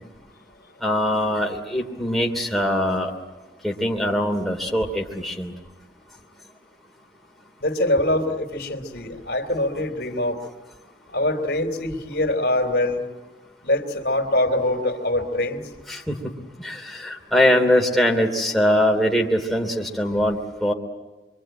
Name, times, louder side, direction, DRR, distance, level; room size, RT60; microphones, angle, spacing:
voice 1, 0.8-3.1 3.6-5.5 15.9-16.1 16.6-20.7, left 1 dB, ahead, 0 dB, 2.9 m, -22 dB
voice 2, 7.6-10.4 11.1-13.0 13.6-15.6, left 1 dB, 60° left, 4 dB, 3.2 m, -23 dB
26.5 x 24.0 x 9.0 m, 1.2 s
head